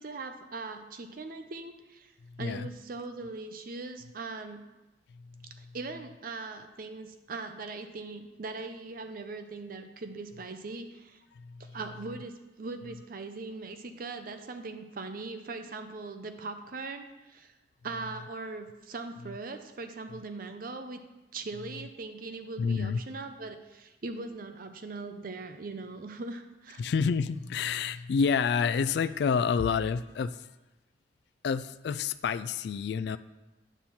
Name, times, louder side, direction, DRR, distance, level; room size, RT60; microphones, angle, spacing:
voice 1, 0.0-2.1 2.4-4.6 5.6-11.2 11.6-17.5 17.8-21.0 21.3-26.9, right 3 dB, 55° right, 7 dB, 0.6 m, -40 dB
voice 2, 2.4-2.7 5.1-5.7 11.3-11.8 22.6-23.0 26.8-30.5 31.4-33.2, left 6 dB, 65° left, 12 dB, 0.3 m, -29 dB
9.2 x 4.3 x 7.1 m, 1.0 s
head